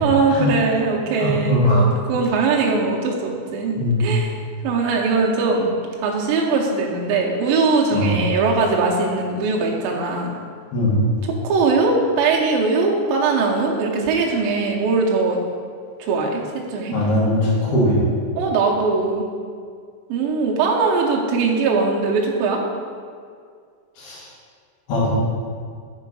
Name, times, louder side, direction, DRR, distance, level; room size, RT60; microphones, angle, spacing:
voice 1, 0.0-4.3 4.6-5.7 6.0-10.4 11.3-15.4 16.0-17.0 18.4-19.3 20.1-22.6, right 4 dB, 80° right, -2 dB, 2.1 m, -20 dB
voice 2, 1.2-1.8 3.8-4.1 7.9-8.1 10.7-11.0 16.9-18.0 24.0-24.3 24.9-25.1, left 1 dB, 80° left, -8 dB, 1.3 m, -20 dB
7.3 x 3.7 x 5.4 m, 2.1 s
omnidirectional pair, 5.1 m